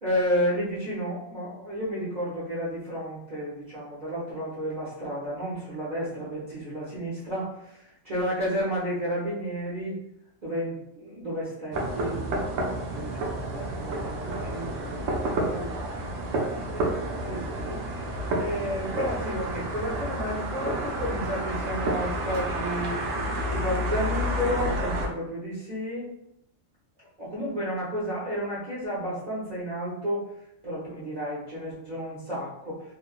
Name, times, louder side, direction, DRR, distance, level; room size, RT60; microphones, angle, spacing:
voice 1, 0.0-10.0 10.4-16.0 16.7-17.8 18.3-23.0 23.5-26.1 27.2-30.2 30.6-32.8, equal, 45° right, -9 dB, 0.7 m, -32 dB
sound 1, 11.7-25.1, right 1 dB, 80° right, 1.0 m, -30 dB
3.0 x 2.1 x 2.3 m, 0.80 s
omnidirectional pair, 1.4 m